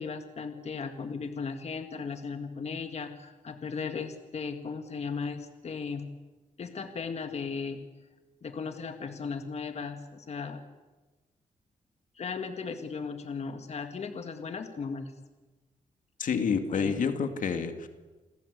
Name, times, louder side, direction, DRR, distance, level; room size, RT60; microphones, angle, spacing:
voice 1, 0.0-6.1 6.6-7.8 8.4-10.6 12.2-15.1 16.7-17.0, left 5 dB, 55° left, 7 dB, 2.0 m, -36 dB
voice 2, 16.2-17.9, left 6 dB, 80° left, 7 dB, 2.4 m, -28 dB
29.0 x 21.5 x 8.3 m, 1.2 s
wide cardioid pair, 115°, 13 cm